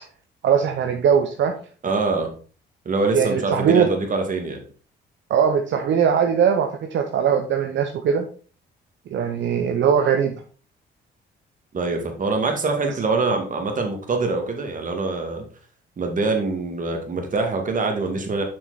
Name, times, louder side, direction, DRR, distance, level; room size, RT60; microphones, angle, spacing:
voice 1, 0.4-1.5 3.1-3.9 5.3-8.3 9.1-10.4, right 7 dB, 65° right, 5 dB, 0.9 m, -20 dB
voice 2, 1.8-2.3 2.9-4.6 11.7-15.4 16.0-18.4, right 3 dB, 40° right, 3 dB, 2.2 m, -24 dB
7.0 x 6.1 x 4.0 m, 0.41 s
cardioid pair, 90°, 20 cm